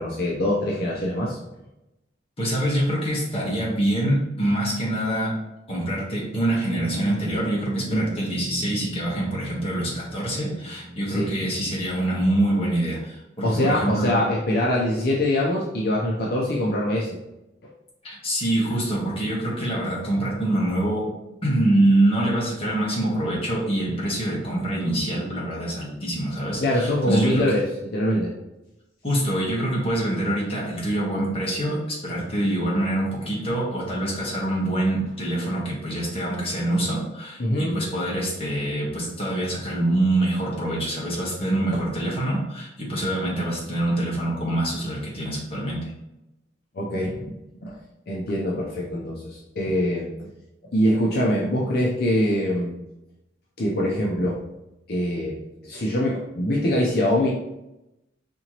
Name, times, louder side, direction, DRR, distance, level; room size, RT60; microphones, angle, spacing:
voice 1, 0.0-1.4 7.9-8.1 11.1-11.3 13.4-17.2 26.6-28.3 37.4-37.8 46.7-47.3 47.6-47.8 48.1-50.1 50.7-52.7 53.6-54.4 54.9-55.4 55.6-57.3, left 1 dB, 60° left, -4 dB, 0.6 m, -23 dB
voice 2, 2.4-5.3 5.7-14.1 18.0-21.0 21.4-27.4 29.0-45.8, right 1 dB, 30° left, -4 dB, 1.3 m, -25 dB
sound 1, 6.7-12.4, right 2 dB, 55° right, 0.7 m, -35 dB
4.3 x 2.9 x 2.9 m, 0.93 s
head